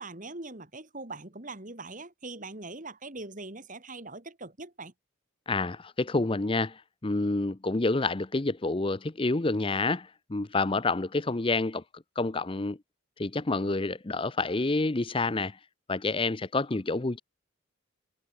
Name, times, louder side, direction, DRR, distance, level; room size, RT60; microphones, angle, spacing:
voice 1, 0.0-4.9, right 2 dB, 35° right, 2.5 m, -42 dB
voice 2, 5.5-11.8 12.2-12.8 13.2-15.6 15.9-17.2, left 3 dB, 25° left, 0.6 m, -28 dB
head